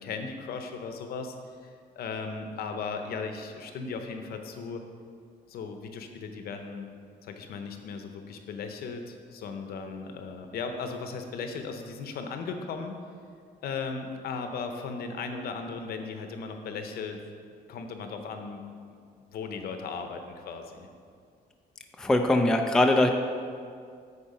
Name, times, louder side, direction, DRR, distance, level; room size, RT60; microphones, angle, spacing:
voice 1, 0.0-1.4 1.6-1.7 2.0-4.8 5.5-6.9 7.2-12.9 13.6-17.2 17.7-18.7 19.3-20.9, left 5 dB, 65° left, 6 dB, 0.8 m, -36 dB
voice 2, 22.0-23.1, left 1 dB, 5° left, 3 dB, 0.4 m, -21 dB
8.7 x 4.3 x 5.5 m, 2.2 s
cardioid pair, 165°, 17 cm